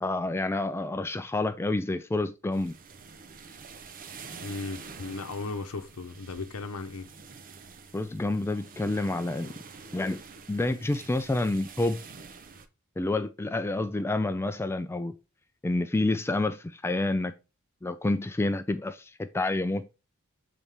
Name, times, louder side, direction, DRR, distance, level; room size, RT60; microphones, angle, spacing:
voice 1, 0.0-2.7 7.9-9.5 9.9-10.2 10.5-12.0 13.0-15.1 15.6-17.3 17.8-19.9, left 2 dB, 10° left, 0.3 m, -28 dB
sound 1, 2.5-12.7, right 5 dB, 40° right, 0.7 m, -47 dB
voice 2, 4.4-7.1, left 3 dB, 85° left, 0.7 m, -36 dB
7.3 x 4.1 x 3.3 m
head